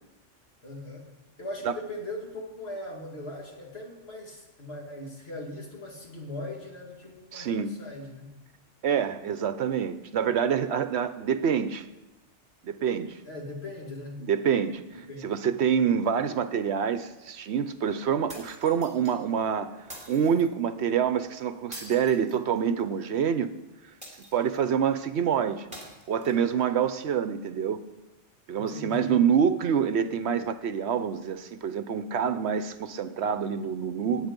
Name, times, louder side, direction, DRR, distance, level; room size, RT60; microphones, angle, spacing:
voice 1, 0.6-1.1 1.4-8.3 13.3-14.3 15.0-15.4 28.5-29.2, left 1 dB, 55° left, -1 dB, 2.7 m, -39 dB
voice 2, 7.3-7.7 8.8-11.9 12.6-13.2 14.2-23.5 24.3-25.7 26.1-27.8 28.5-34.3, right 7 dB, 70° right, 12 dB, 0.9 m, -26 dB
sound 1, 18.3-19.1 19.9-20.5 21.7-22.9 24.0-24.7 25.7-26.7, right 1 dB, 5° right, 3.3 m, -45 dB
17.5 x 9.5 x 5.2 m, 1.1 s
omnidirectional pair, 1.2 m